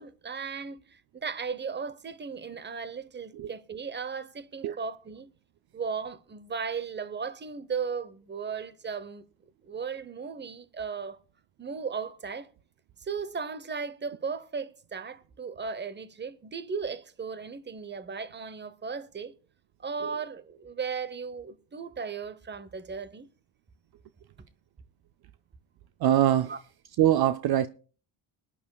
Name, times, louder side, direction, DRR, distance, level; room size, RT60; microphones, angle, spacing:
voice 1, 0.0-5.3 5.7-9.2 9.6-11.2 11.6-12.5 13.0-19.3 19.8-23.3 26.4-26.6, right 5 dB, 20° right, 0.9 m, -36 dB
voice 2, 26.0-26.5 27.0-27.7, right 11 dB, 55° right, 0.5 m, -22 dB
22.5 x 9.9 x 2.3 m
cardioid pair, 100°, 47 cm